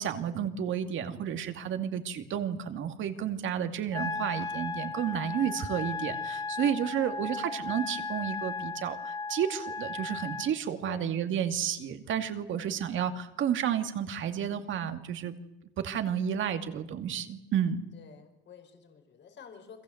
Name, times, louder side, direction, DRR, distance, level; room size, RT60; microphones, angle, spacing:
voice 1, 0.0-15.4 15.8-17.9, right 9 dB, 75° right, 7 dB, 2.4 m, -31 dB
Wind instrument woodwind instrument, 3.9-10.5, left 4 dB, 20° left, 1.2 m, -36 dB
voice 2, 6.5-7.3 10.8-11.2 12.5-12.8 17.9-19.8, left 6 dB, 65° left, 5 dB, 4.8 m, -50 dB
29.5 x 23.0 x 8.0 m, 0.90 s
cardioid pair, 90°, 20 cm